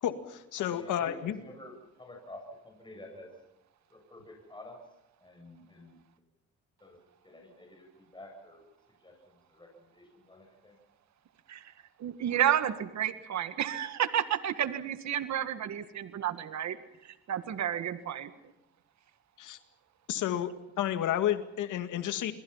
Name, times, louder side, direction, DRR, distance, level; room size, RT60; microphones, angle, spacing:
voice 1, 0.0-1.3 19.4-19.6 20.1-22.3, left 11 dB, 80° left, 9 dB, 2.1 m, -31 dB
voice 2, 0.6-3.3 3.9-4.8 5.2-6.0 6.8-8.6 9.0-10.8, left 1 dB, 15° left, 2 dB, 7.9 m, -50 dB
voice 3, 12.0-16.8 17.0-18.3, right 10 dB, 65° right, 11 dB, 1.8 m, -31 dB
28.5 x 22.5 x 5.8 m, 0.84 s
cardioid pair, 90°, 30 cm